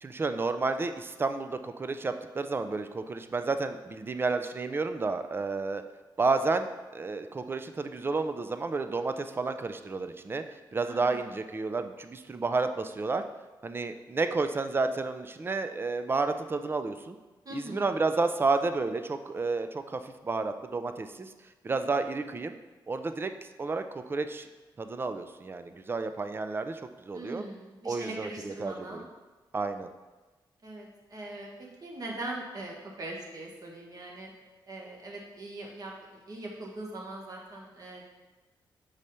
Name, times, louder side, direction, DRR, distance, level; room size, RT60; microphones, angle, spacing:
voice 1, 0.0-5.8 6.2-10.4 10.7-13.2 13.6-17.2 17.5-21.3 21.6-22.5 22.9-23.3 23.6-24.5 24.8-27.4 27.8-29.1 29.5-29.9, right 3 dB, 25° right, 9 dB, 0.4 m, -31 dB
voice 2, 10.8-11.3 17.4-17.9 27.1-29.1 30.6-31.5 31.8-34.3 34.7-38.0, right 2 dB, 45° right, -1 dB, 1.5 m, -41 dB
5.3 x 4.8 x 4.3 m, 1.2 s
cardioid pair, 85°, 9 cm